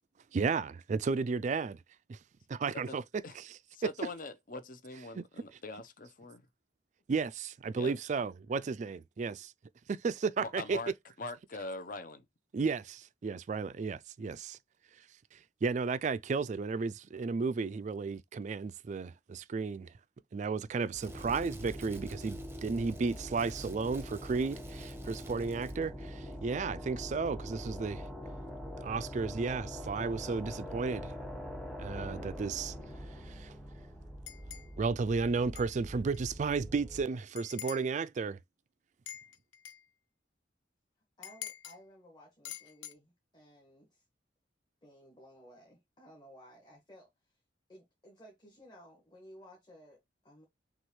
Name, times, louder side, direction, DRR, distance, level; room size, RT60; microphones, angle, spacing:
voice 1, 0.3-1.8 2.1-2.2 2.5-3.0 3.3-3.5 5.1-5.2 7.1-9.5 9.9-10.8 12.5-14.6 15.3-19.9 20.3-28.0 28.8-31.1 31.8-32.7 33.3-33.5 34.8-38.4, right 4 dB, 40° right, 0.3 m, -33 dB
voice 2, 3.7-6.4 7.8-7.9 10.4-10.9 11.2-12.2, left 2 dB, 45° left, 0.7 m, -42 dB
Crackle, 20.6-26.0 26.3-26.5, right 3 dB, 15° right, 0.7 m, -56 dB
sound 1, 21.0-37.1, equal, ahead, 1.1 m, -43 dB
sound 2, 34.3-34.7 35.5-35.7 36.1-36.2 37.4-37.9 39.1-39.8 41.2-41.8 42.4-42.9, left 11 dB, 85° left, 0.6 m, -45 dB
voice 3, 41.2-44.0 44.8-47.1 47.7-50.4, equal, 25° left, 1.6 m, -56 dB
6.1 x 2.4 x 3.1 m
head